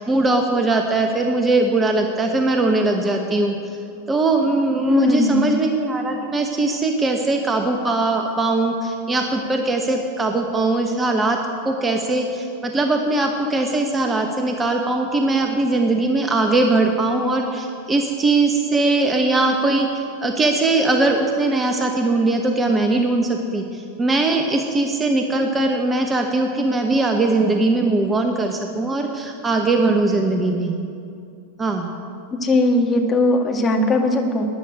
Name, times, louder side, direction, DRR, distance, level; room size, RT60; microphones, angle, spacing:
voice 1, 0.0-3.8 4.1-11.4 11.6-19.9 20.2-30.8 31.6-31.9, right 2 dB, 15° right, 4 dB, 1.1 m, -20 dB
voice 2, 4.9-5.5 32.4-34.4, left 1 dB, 20° left, 1 dB, 2.0 m, -19 dB
13.5 x 10.5 x 8.3 m, 2.5 s
figure-of-eight pair, 90°, 0 cm